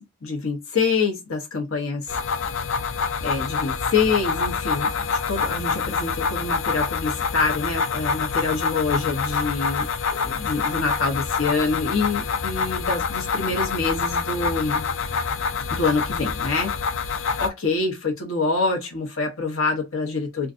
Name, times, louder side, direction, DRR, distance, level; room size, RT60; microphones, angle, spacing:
voice 1, 0.2-2.2 3.2-9.9 10.2-14.9 15.7-16.7 17.4-20.5, left 4 dB, 80° left, 1.0 m, -26 dB
sound 1, 2.1-17.5, left 5 dB, 65° left, 0.5 m, -26 dB
3.7 x 2.4 x 2.5 m
head